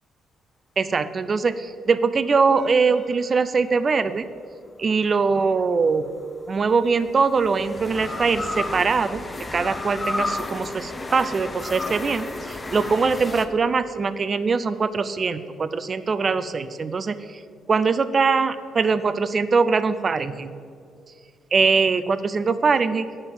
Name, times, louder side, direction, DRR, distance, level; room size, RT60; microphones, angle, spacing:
voice 1, 0.8-4.3 4.8-6.1 6.5-9.2 9.5-17.2 17.7-20.5 21.5-23.1, right 4 dB, 40° right, 13 dB, 0.5 m, -22 dB
sound 1, 2.5-4.1 5.9-13.5, left 2 dB, 25° left, 0.7 m, -33 dB
9.1 x 5.5 x 7.0 m, 2.3 s
cardioid pair, 90°, 0 cm